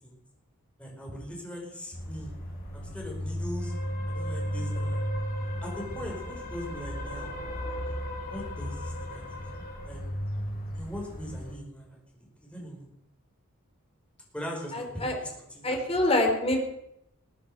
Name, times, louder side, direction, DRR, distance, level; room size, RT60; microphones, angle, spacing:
voice 1, 0.8-2.3 2.7-3.7 4.1-5.0 5.6-7.3 8.2-10.0 10.7-12.9 14.3-15.3 15.5-15.8, equal, 5° left, -1 dB, 5.0 m, -40 dB
sound 1, 1.9-11.5, equal, 45° left, 5.4 m, -34 dB
voice 2, 14.7-15.1 15.6-16.6, left 1 dB, 30° left, 2 dB, 3.5 m, -25 dB
21.5 x 8.4 x 6.8 m, 0.79 s
head